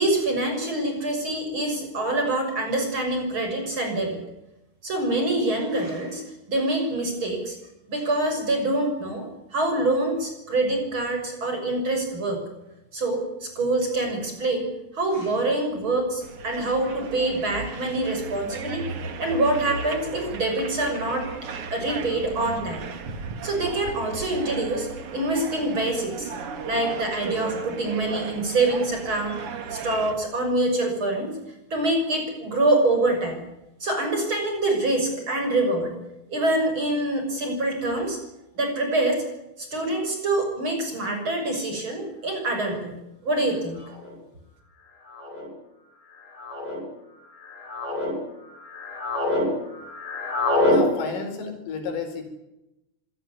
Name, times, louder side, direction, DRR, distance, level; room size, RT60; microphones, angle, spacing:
voice 1, 0.0-4.2 4.8-6.2 6.5-7.6 7.9-12.4 12.9-18.8 19.2-21.3 21.7-22.8 23.4-26.3 26.6-29.4 29.7-31.4 31.7-33.4 33.8-35.9 36.3-38.2 38.6-39.2 39.6-43.0 43.2-43.9, right 2 dB, 25° right, 4 dB, 6.6 m, -25 dB
sound 1, 16.2-30.1, right 5 dB, 75° right, 1.3 m, -35 dB
sound 2, 42.8-42.9 43.9-44.2 45.1-45.5 46.3-46.8 47.4-48.1 48.6-49.5 49.7-50.8, left 2 dB, 55° left, 8.3 m, -25 dB
voice 2, 50.7-52.2, left 4 dB, 75° left, 5 dB, 7.2 m, -31 dB
26.0 x 18.0 x 9.7 m, 0.91 s
omnidirectional pair, 5.9 m